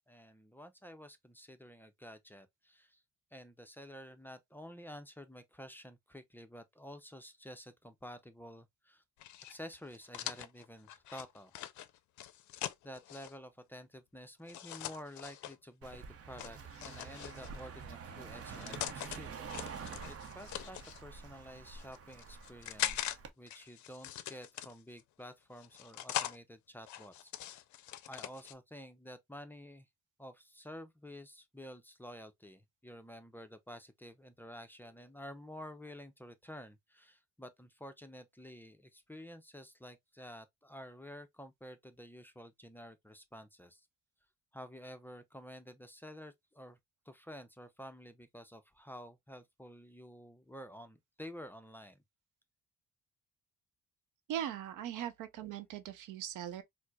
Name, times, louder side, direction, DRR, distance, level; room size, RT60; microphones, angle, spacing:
voice 1, 0.1-3.0 3.3-9.0 9.5-11.5 12.8-19.8 20.1-27.3 28.1-29.9 30.2-43.9 44.5-46.8 47.1-52.0 55.0-55.1, equal, 5° left, 0.4 m, -51 dB
sound 1, 9.2-13.3 14.5-15.6 16.4-17.6 18.3-19.2 19.5-21.0 21.7-23.2 23.5-25.0 25.6-26.4 26.8-28.5, left 13 dB, 70° left, 0.5 m, -42 dB
Car passing by, 15.8-23.3, right 6 dB, 50° right, 0.7 m, -47 dB
voice 2, 54.3-56.6, right 10 dB, 85° right, 0.6 m, -40 dB
4.3 x 2.0 x 2.3 m
cardioid pair, 90°, 30 cm